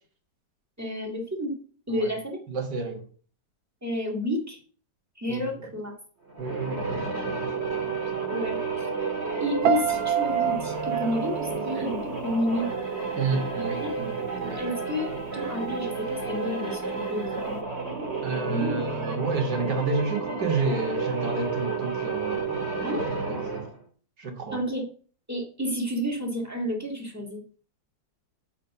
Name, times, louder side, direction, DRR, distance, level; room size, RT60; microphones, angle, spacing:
voice 1, 0.8-1.5 1.9-2.4 3.8-4.6 5.2-5.9 8.3-8.9 9.4-12.7 13.8-14.0 14.6-17.6 18.5-18.8 19.5-19.7 22.8-23.1 24.5-24.8 25.3-27.6, left 1 dB, 10° right, 1.8 m, -30 dB
voice 2, 2.5-3.0 5.3-5.7 6.4-8.3 11.8-11.9 13.2-14.2 14.4-14.6 18.2-22.7 23.3-23.7 24.2-24.6, right 4 dB, 65° right, 2.2 m, -31 dB
sound 1, 6.3-23.8, right 4 dB, 35° right, 2.4 m, -31 dB
Piano, 9.6-12.7 13.0-13.5, right 10 dB, 90° right, 1.6 m, -28 dB
7.2 x 4.5 x 6.7 m
omnidirectional pair, 2.0 m